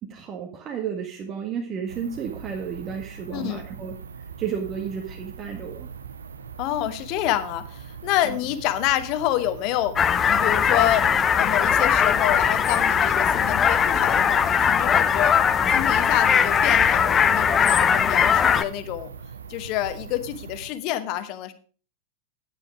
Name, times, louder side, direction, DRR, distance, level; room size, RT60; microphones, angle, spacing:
voice 1, 0.0-5.9 8.2-8.4, right 7 dB, 30° right, 1 dB, 1.7 m, -32 dB
sound 1, 1.9-20.7, right 6 dB, 70° right, 0.8 m, -41 dB
voice 2, 3.3-3.6 6.6-10.0 10.3-15.4 15.7-19.1 19.5-21.5, left 13 dB, 40° left, 12 dB, 1.1 m, -27 dB
sound 2, 10.0-18.6, left 7 dB, 25° left, 0.6 m, -20 dB
10.0 x 9.1 x 4.9 m, 0.39 s
figure-of-eight pair, 90°, 0 cm